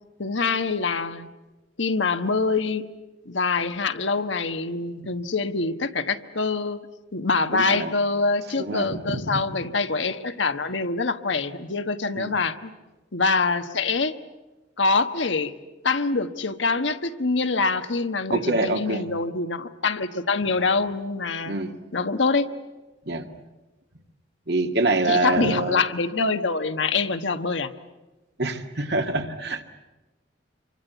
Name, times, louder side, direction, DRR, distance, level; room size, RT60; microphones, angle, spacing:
voice 1, 0.2-1.3 1.8-2.9 3.2-6.8 7.1-12.7 13.1-14.1 14.8-15.5 15.8-21.6 21.9-22.5 25.1-27.7, left 4 dB, 75° left, 8 dB, 1.3 m, -25 dB
voice 2, 7.5-7.9 8.6-9.4 12.2-12.3 18.3-19.0 21.5-21.7 23.1-23.3 24.5-25.8 28.4-29.6, right 2 dB, 60° right, 5 dB, 2.0 m, -25 dB
27.0 x 24.5 x 8.1 m, 1.1 s
head